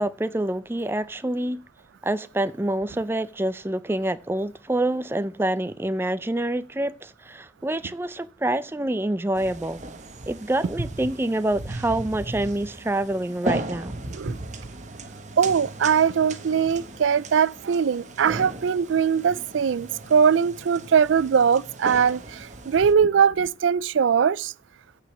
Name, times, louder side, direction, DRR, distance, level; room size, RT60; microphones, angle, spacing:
voice 1, 0.0-1.6 2.0-9.8 10.3-13.9, right 1 dB, 10° right, 0.4 m, -26 dB
sound 1, 9.3-22.9, right 2 dB, 40° right, 1.1 m, -36 dB
voice 2, 15.4-22.2 22.7-24.5, right 7 dB, 80° right, 0.4 m, -21 dB
9.3 x 4.9 x 7.9 m
head